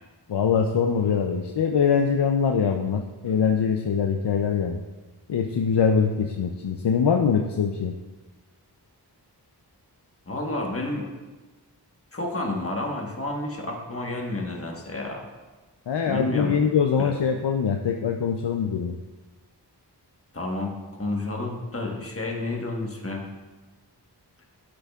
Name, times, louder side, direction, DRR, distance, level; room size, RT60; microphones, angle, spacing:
voice 1, 0.3-4.8 5.3-7.9 15.9-18.9, left 6 dB, 75° left, 3 dB, 0.6 m, -23 dB
voice 2, 10.3-11.1 12.1-15.2 16.0-16.6 16.9-17.1 20.3-20.7 21.0-23.2, left 2 dB, 35° left, 0 dB, 1.3 m, -30 dB
8.6 x 8.5 x 2.4 m, 1.2 s
wide cardioid pair, 50°, 42 cm